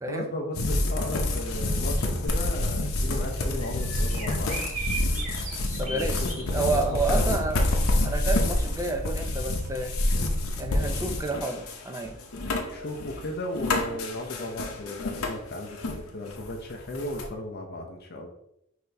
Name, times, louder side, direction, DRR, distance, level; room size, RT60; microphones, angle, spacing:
voice 1, 0.1-4.6 5.8-7.3 10.7-11.0 12.5-18.3, left 1 dB, 45° left, 2 dB, 0.6 m, -35 dB
sound 1, 0.5-16.0 16.3-17.3, left 1 dB, 80° left, 0.7 m, -28 dB
Bird vocalization bird call bird song, 2.3-10.7, equal, 35° right, 1.2 m, -36 dB
voice 2, 5.8-6.2 6.5-7.6 8.0-9.9 10.6-12.2, right 3 dB, 15° right, 5 dB, 0.4 m, -30 dB
5.8 x 2.7 x 3.3 m, 0.81 s
head